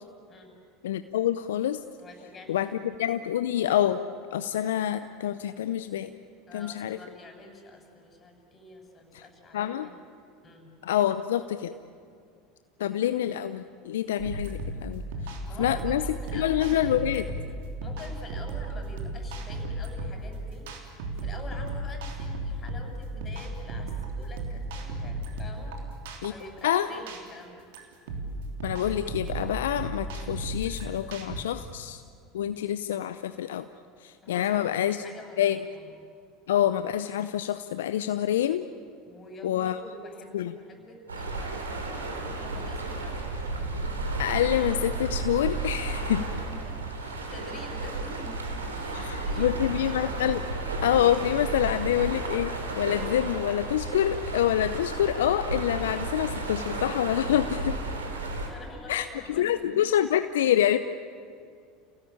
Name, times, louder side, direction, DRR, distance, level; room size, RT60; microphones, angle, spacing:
voice 1, 0.8-1.8 2.5-4.0 4.3-6.1 6.5-7.0 9.1-9.2 9.5-9.9 10.8-11.7 12.8-16.0 16.3-17.3 26.2-26.3 26.6-26.9 28.6-32.0 32.3-33.7 34.0-35.0 35.4-35.6 36.5-38.6 39.4-39.8 40.3-40.5 44.2-46.2 48.9-50.5 50.8-57.8 58.9-60.8, left 11 dB, 75° left, 11 dB, 0.7 m, -27 dB
voice 2, 2.0-2.7 6.5-10.0 10.4-10.8 15.1-16.9 17.8-20.8 21.1-25.9 26.3-27.7 34.2-35.9 39.0-43.5 46.1-50.0 57.6-58.2 58.5-59.9, left 1 dB, 30° left, 3 dB, 7.1 m, -46 dB
sound 1, 14.2-31.4, right 2 dB, 70° right, 3.3 m, -35 dB
sound 2, 41.1-58.5, right 2 dB, 90° right, 3.0 m, -33 dB
29.5 x 17.5 x 8.8 m, 2.2 s
hypercardioid pair, 80°, 0 cm